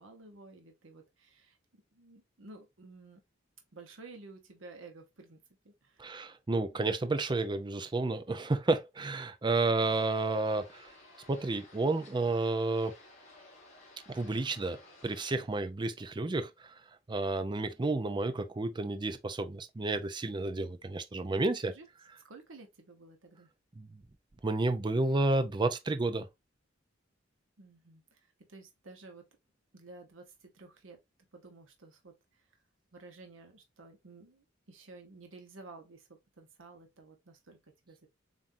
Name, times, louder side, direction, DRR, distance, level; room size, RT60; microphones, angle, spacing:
voice 1, 0.0-1.6 1.9-3.2 3.7-5.4 5.6-6.1 21.4-21.9 22.2-23.5 27.6-29.3 29.7-31.0 31.3-32.6 32.9-38.1, right 3 dB, 80° right, 1.0 m, -53 dB
voice 2, 6.0-10.9 11.3-13.0 14.1-16.7 17.1-21.7 23.8-24.0 24.4-26.3, right 2 dB, 25° right, 0.5 m, -31 dB
sound 1, 9.7-15.3, left 2 dB, 35° left, 2.7 m, -56 dB
7.2 x 2.6 x 2.6 m
head